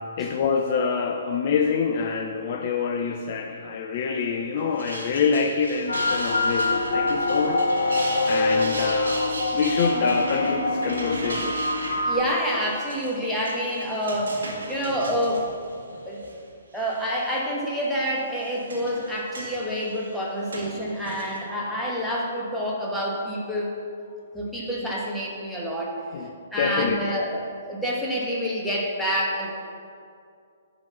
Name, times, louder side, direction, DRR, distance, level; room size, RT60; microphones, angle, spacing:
voice 1, 0.2-7.7 8.3-11.6 26.1-26.3 26.6-27.2, left 6 dB, 40° left, 4 dB, 0.5 m, -26 dB
sound 1, 4.6-16.3 16.8-17.4 18.2-21.4, right 2 dB, 65° right, 1.7 m, -37 dB
sound 2, 5.9-12.2, left 2 dB, 65° left, 1.0 m, -24 dB
voice 2, 12.0-15.5 16.0-16.2 16.7-23.7 24.3-26.0 26.5-29.5, equal, ahead, -5 dB, 1.4 m, -28 dB
10.5 x 4.0 x 5.6 m, 2.3 s
figure-of-eight pair, 125°, 0 cm